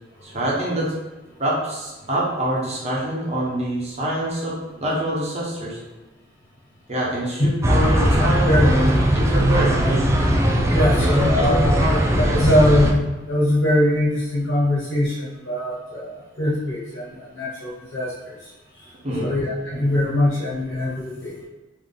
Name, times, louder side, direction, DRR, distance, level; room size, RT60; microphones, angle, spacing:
voice 1, 0.2-0.9 1.4-5.8 6.9-10.0 11.0-12.4 19.0-19.3, right 1 dB, 35° right, -5 dB, 1.1 m, -25 dB
sound 1, 7.6-12.9, equal, 15° right, 0.4 m, -19 dB
voice 2, 8.4-8.8 10.7-11.8 12.3-18.4 19.2-21.4, left 1 dB, 85° left, -6 dB, 1.4 m, -22 dB
3.8 x 3.0 x 3.7 m, 1.2 s
head